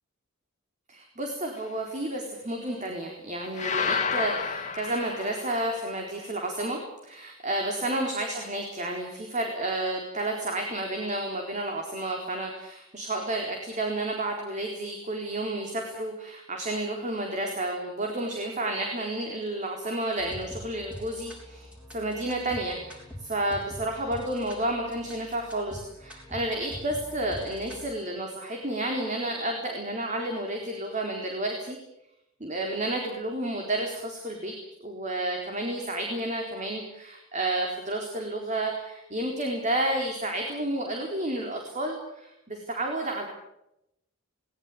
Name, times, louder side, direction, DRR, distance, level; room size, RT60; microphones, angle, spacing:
voice 1, 0.9-31.8 32.4-34.5 34.8-43.3, right 1 dB, 35° right, 2 dB, 4.1 m, -31 dB
sound 1, 3.6-5.8, left 5 dB, 35° left, 1.8 m, -30 dB
sound 2, 20.2-27.9, equal, 5° right, 5.4 m, -44 dB
21.0 x 19.0 x 8.6 m, 0.84 s
head